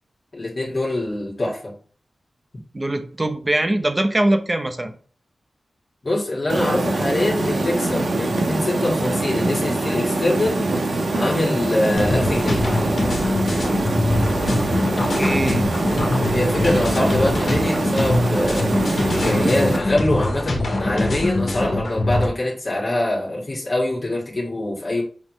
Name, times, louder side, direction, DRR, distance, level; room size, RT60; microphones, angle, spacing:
voice 1, 0.3-1.7 6.0-10.6 11.1-12.6 16.3-18.7 19.2-25.0, left 1 dB, 40° left, -4 dB, 2.0 m, -23 dB
voice 2, 2.7-4.9 15.1-15.7, right 1 dB, 25° right, 8 dB, 0.8 m, -22 dB
sound 1, 6.5-19.8, right 2 dB, 70° right, 1.1 m, -23 dB
sound 2, 11.9-22.3, left 2 dB, 60° left, 1.7 m, -23 dB
5.9 x 5.7 x 3.2 m, 0.42 s
wide cardioid pair, 85°, 0 cm